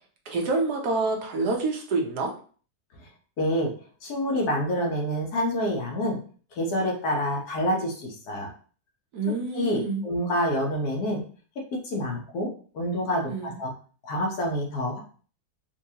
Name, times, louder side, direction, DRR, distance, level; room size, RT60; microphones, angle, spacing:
voice 1, 0.3-2.3 9.1-10.0 13.3-13.6, right 3 dB, 80° right, 2 dB, 1.3 m, -27 dB
voice 2, 3.4-3.7 4.0-6.2 6.5-8.5 9.5-11.2 11.8-12.5 12.7-13.7 14.0-15.0, equal, 75° left, 0 dB, 1.4 m, -27 dB
4.5 x 2.3 x 2.8 m, 0.42 s
omnidirectional pair, 1.7 m